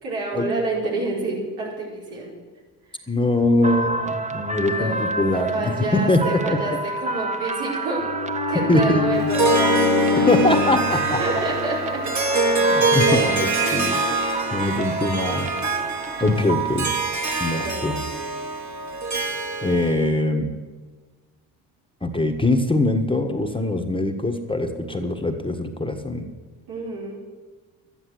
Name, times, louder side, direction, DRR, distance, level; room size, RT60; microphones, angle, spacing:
voice 1, 0.0-2.3 4.6-5.2 5.5-8.1 8.5-10.4 11.2-12.2 13.0-13.2 13.5-14.2 17.5-17.9 26.7-27.2, right 2 dB, 80° right, -4 dB, 5.0 m, -29 dB
voice 2, 3.1-6.8 8.7-9.3 10.2-11.2 12.6-14.0 14.5-15.5 16.2-16.9 17.4-18.0 19.6-20.5 22.0-26.3, left 2 dB, 10° left, 6 dB, 1.5 m, -22 dB
sound 1, 3.6-17.3, right 2 dB, 15° right, 1.0 m, -29 dB
Bowed string instrument, 8.0-12.2, left 6 dB, 35° left, 1.4 m, -25 dB
Harp, 9.1-20.1, right 3 dB, 35° right, 2.3 m, -24 dB
12.0 x 10.5 x 7.9 m, 1.4 s
supercardioid pair, 60°, 48 cm